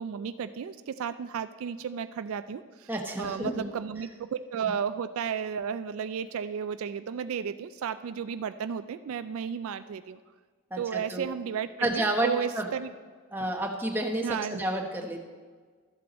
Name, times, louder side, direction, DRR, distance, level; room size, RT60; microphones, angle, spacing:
voice 1, 0.0-2.9 3.2-10.2 10.8-12.9 14.2-14.6, right 7 dB, 70° right, 12 dB, 0.3 m, -33 dB
voice 2, 2.9-3.7 10.7-11.3 11.8-12.7 13.3-15.3, right 1 dB, 10° right, 1 dB, 1.0 m, -30 dB
13.0 x 7.6 x 4.1 m, 1.5 s
head